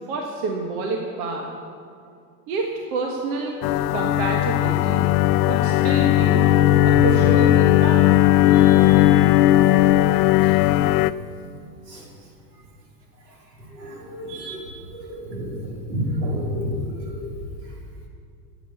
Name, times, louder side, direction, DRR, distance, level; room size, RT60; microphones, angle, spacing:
voice 1, 0.1-1.5 2.5-3.6 3.9-5.1 5.5-6.5 6.8-8.2, right 3 dB, 65° right, 1 dB, 1.6 m, -28 dB
sound 1, 3.6-11.1, left 14 dB, 50° left, 0.5 m, -17 dB
voice 2, 8.5-9.1 10.4-10.5 11.9-12.0 13.8-17.3, equal, 90° right, -1 dB, 3.0 m, -30 dB
10.0 x 8.7 x 8.3 m, 2.3 s
hypercardioid pair, 105°, 47 cm